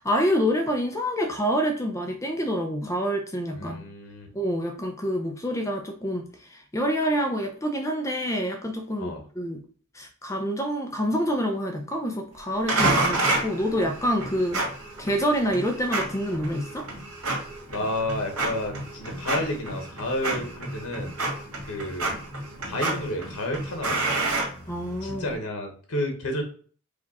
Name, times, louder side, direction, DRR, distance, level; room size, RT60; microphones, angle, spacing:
voice 1, 0.0-3.9 4.3-9.6 9.9-14.7 15.0-16.9 24.7-25.2, equal, 15° left, 3 dB, 0.4 m, -27 dB
voice 2, 3.5-4.3 9.0-9.2 17.7-21.2 21.6-22.1 22.7-24.2 25.0-26.4, left 1 dB, 90° left, 4 dB, 1.0 m, -31 dB
sound 1, 12.7-25.2, right 2 dB, 80° right, 1.7 m, -29 dB
4.9 x 2.3 x 4.0 m, 0.43 s
head